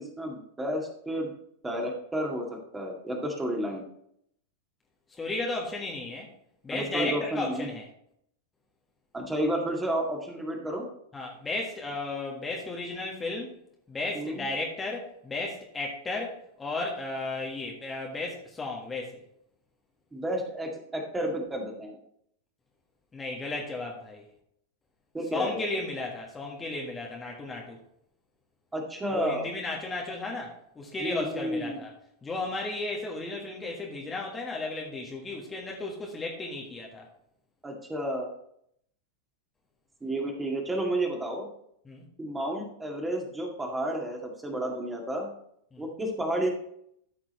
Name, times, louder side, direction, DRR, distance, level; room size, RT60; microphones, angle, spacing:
voice 1, 0.0-1.3 1.6-3.8 6.7-7.7 9.1-10.9 14.2-14.4 20.1-22.0 25.1-25.6 28.7-29.5 31.0-31.8 37.6-38.3 40.0-41.5 42.2-45.3 45.8-46.5, right 1 dB, 10° right, 1 dB, 2.1 m, -31 dB
voice 2, 5.2-6.3 6.6-7.9 11.1-13.5 13.9-19.2 23.1-24.2 25.3-27.8 29.1-31.9 32.2-37.1 41.8-42.1 45.7-45.9, left 2 dB, 15° left, -1 dB, 1.5 m, -34 dB
13.5 x 6.0 x 3.1 m, 0.71 s
figure-of-eight pair, 90°, 0 cm